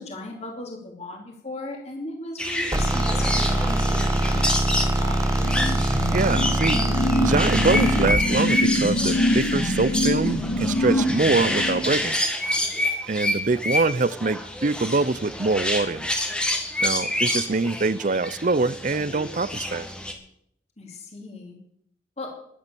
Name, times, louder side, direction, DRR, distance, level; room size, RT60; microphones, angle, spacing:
voice 1, 0.0-5.5 20.8-21.6 22.2-22.3, left 2 dB, 35° left, 1 dB, 3.0 m, -37 dB
sound 1, 2.4-20.1, left 1 dB, 5° left, 1.7 m, -28 dB
sound 2, 2.7-8.3, right 1 dB, 15° right, 1.1 m, -23 dB
sound 3, 5.4-12.1, left 1 dB, 50° left, 1.9 m, -25 dB
voice 2, 5.8-6.8 7.2-12.2 13.1-16.1 16.8-19.9, right 3 dB, 40° right, 19 dB, 0.6 m, -24 dB
14.0 x 11.5 x 7.0 m, 0.71 s
head